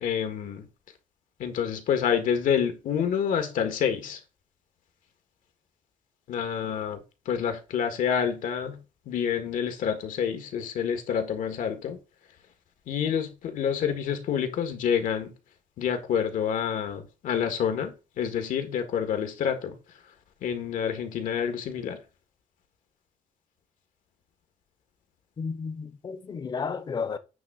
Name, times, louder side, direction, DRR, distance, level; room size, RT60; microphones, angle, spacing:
voice 1, 0.0-0.6 1.4-4.2 6.3-7.0 7.2-8.8 9.1-12.0 12.9-15.3 15.8-19.7 20.4-22.0, left 8 dB, 80° left, 1.7 m, -28 dB
voice 2, 25.4-27.2, left 5 dB, 30° left, 0.8 m, -32 dB
9.2 x 3.5 x 6.2 m
cardioid pair, 165°, 14 cm